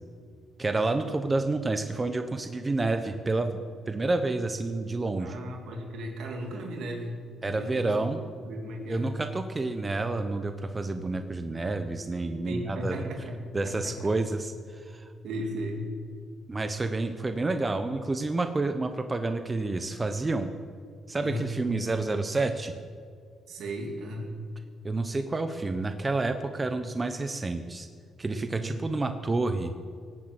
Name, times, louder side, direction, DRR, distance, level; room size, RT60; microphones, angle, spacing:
voice 1, 0.6-3.6 3.9-5.4 7.4-8.2 8.9-13.0 13.5-15.1 16.5-20.5 21.1-22.7 24.8-27.9 28.2-29.7, right 3 dB, 25° right, 8 dB, 1.0 m, -29 dB
voice 2, 5.2-7.2 7.5-8.1 8.4-9.1 12.5-14.0 15.2-15.9 17.4-17.6 21.2-21.5 23.5-24.3 28.6-28.9, equal, 75° right, 2 dB, 2.7 m, -36 dB
18.5 x 8.4 x 8.0 m, 2.1 s
cardioid pair, 90°, 0 cm